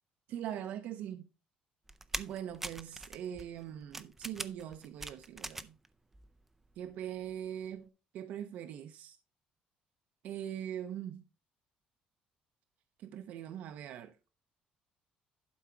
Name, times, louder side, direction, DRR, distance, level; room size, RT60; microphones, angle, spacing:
voice 1, 0.3-1.2 2.2-5.8 6.8-9.2 10.2-11.2 13.0-14.1, right 10 dB, 65° right, 0.8 m, -42 dB
sound 1, 1.9-5.9 6.1-6.9 7.2-7.4, right 2 dB, 10° right, 0.5 m, -43 dB
11.5 x 4.8 x 4.6 m
cardioid pair, 175°, 3 cm